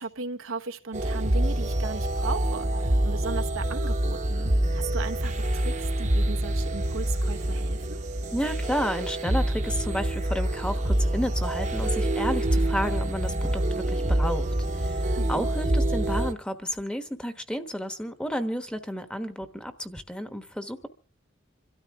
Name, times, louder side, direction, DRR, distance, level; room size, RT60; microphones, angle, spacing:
voice 1, 0.0-8.0 15.2-15.5, right 4 dB, 90° right, 1.2 m, -37 dB
sound 1, 0.9-16.3, right 1 dB, 35° right, 1.0 m, -26 dB
voice 2, 8.3-14.5 14.8-20.9, equal, 5° left, 1.1 m, -32 dB
26.5 x 13.0 x 3.6 m
head